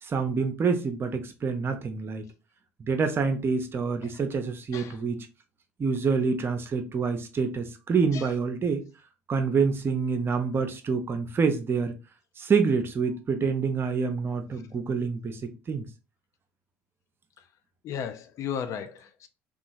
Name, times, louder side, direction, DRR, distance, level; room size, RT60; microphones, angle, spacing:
voice 1, 0.0-2.3 2.8-5.2 5.8-8.8 9.3-11.9 12.4-15.4 15.7-15.9, right 5 dB, 35° right, 0.6 m, -27 dB
voice 2, 17.8-19.3, left 7 dB, 55° left, 0.4 m, -34 dB
2.8 x 2.4 x 2.5 m
hypercardioid pair, 70°, 6 cm